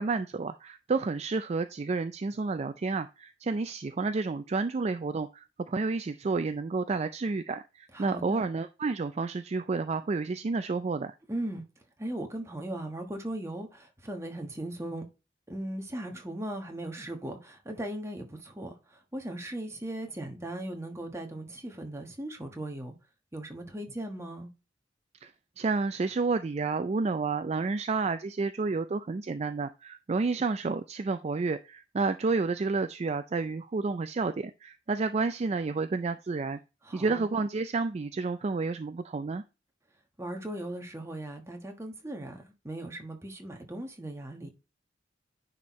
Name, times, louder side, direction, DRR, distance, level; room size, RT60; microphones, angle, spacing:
voice 1, 0.0-11.1 25.2-25.3 25.6-36.6 36.9-39.4, right 4 dB, 35° right, 0.4 m, -30 dB
voice 2, 7.9-8.4 11.3-11.6 12.0-15.0 15.5-22.9 23.3-24.5 36.8-37.2 40.2-44.5, right 1 dB, 15° right, 1.2 m, -38 dB
9.8 x 4.3 x 3.1 m
head